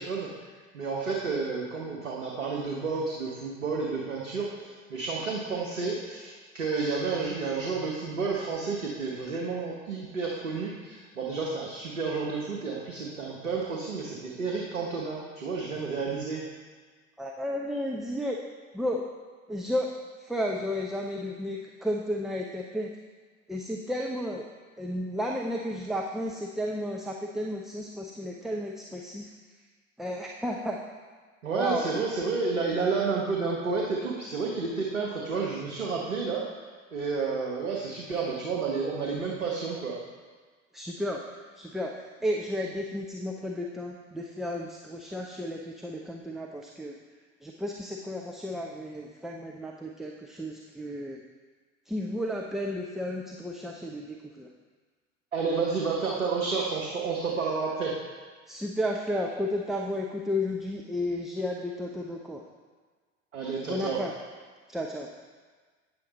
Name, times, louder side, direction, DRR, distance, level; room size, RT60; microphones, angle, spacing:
voice 1, 0.0-16.4 31.4-36.4 36.9-40.0 55.3-58.0 63.3-64.0, right 4 dB, 80° right, -2 dB, 1.1 m, -31 dB
voice 2, 17.2-18.4 18.7-19.0 19.5-19.9 20.2-22.9 23.5-24.4 24.8-29.3 30.0-30.8 31.5-31.9 40.7-47.0 47.4-51.2 51.9-54.5 58.5-62.4 63.6-64.1 64.7-65.1, left 1 dB, ahead, -1 dB, 0.4 m, -33 dB
8.9 x 7.0 x 4.1 m, 1.5 s
figure-of-eight pair, 70°, 39 cm